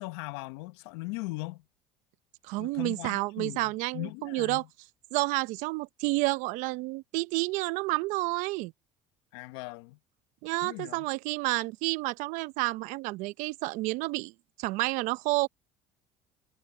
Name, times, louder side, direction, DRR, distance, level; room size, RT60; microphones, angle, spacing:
voice 1, 0.0-1.6 2.6-4.7 9.3-10.0 10.6-11.1, left 22 dB, 80° left, 0.9 m, -39 dB
voice 2, 2.5-4.6 5.1-8.7 10.4-14.3 14.6-15.5, right 22 dB, 75° right, 0.8 m, -30 dB
supercardioid pair, 85°, 13 cm